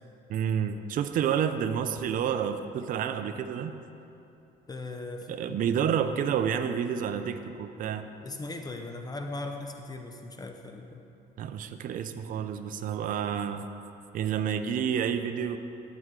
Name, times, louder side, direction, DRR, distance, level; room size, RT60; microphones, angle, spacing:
voice 1, 0.3-3.7 5.3-8.1 11.4-13.7 14.1-15.6, right 8 dB, 55° right, 9 dB, 0.5 m, -29 dB
voice 2, 4.7-5.6 8.2-11.0, left 2 dB, 20° left, 4 dB, 0.6 m, -38 dB
12.5 x 7.8 x 3.7 m, 2.9 s
cardioid pair, 110°, 17 cm